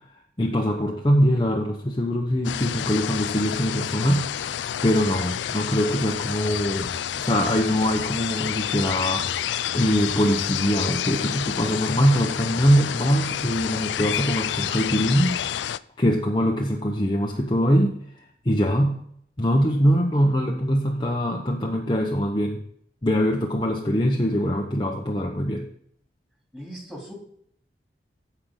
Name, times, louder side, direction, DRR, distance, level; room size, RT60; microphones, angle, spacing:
voice 1, 0.4-4.5 4.8-6.9 7.2-15.7 16.0-18.0 18.4-19.0 19.4-22.6 23.0-25.7, equal, 25° left, 0 dB, 0.9 m, -23 dB
sound 1, 2.4-15.8, left 10 dB, 90° left, 0.4 m, -29 dB
voice 2, 26.5-27.1, equal, 5° right, -3 dB, 3.2 m, -39 dB
15.0 x 5.7 x 3.8 m, 0.65 s
head